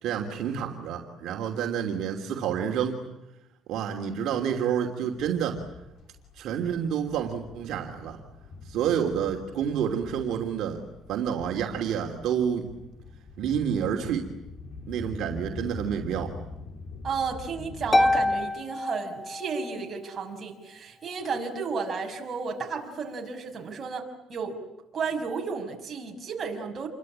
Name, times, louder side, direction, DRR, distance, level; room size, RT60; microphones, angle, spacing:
voice 1, 0.0-3.0 3.7-5.6 6.4-8.2 8.6-10.8 11.1-12.7 13.4-14.3 14.9-16.4, right 8 dB, 65° right, 1 dB, 2.9 m, -29 dB
sound 1, 5.1-18.4, left 3 dB, 50° left, 3.5 m, -44 dB
voice 2, 17.0-24.6 24.9-26.9, right 5 dB, 30° right, 1 dB, 5.9 m, -33 dB
Harp, 17.9-19.8, left 2 dB, 20° left, 1.3 m, -25 dB
28.5 x 23.5 x 8.8 m, 0.95 s
cardioid pair, 135°, 0 cm